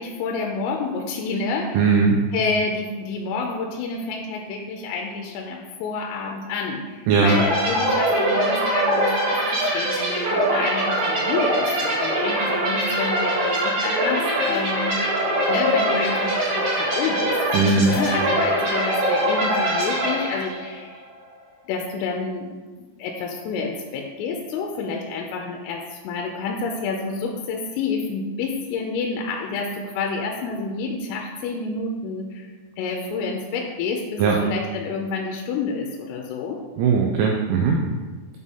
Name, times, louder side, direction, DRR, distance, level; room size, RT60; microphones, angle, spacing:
voice 1, 0.0-2.0 2.3-21.0 21.7-32.5 32.8-36.6, left 4 dB, 85° left, 1 dB, 3.1 m, -29 dB
voice 2, 1.7-2.2 7.1-7.4 17.5-18.0 34.2-34.4 36.8-37.8, right 5 dB, 90° right, 0 dB, 2.6 m, -18 dB
sound 1, 7.3-20.8, right 1 dB, 55° right, 3.1 m, -23 dB
7.7 x 3.6 x 4.1 m, 1.3 s
omnidirectional pair, 5.9 m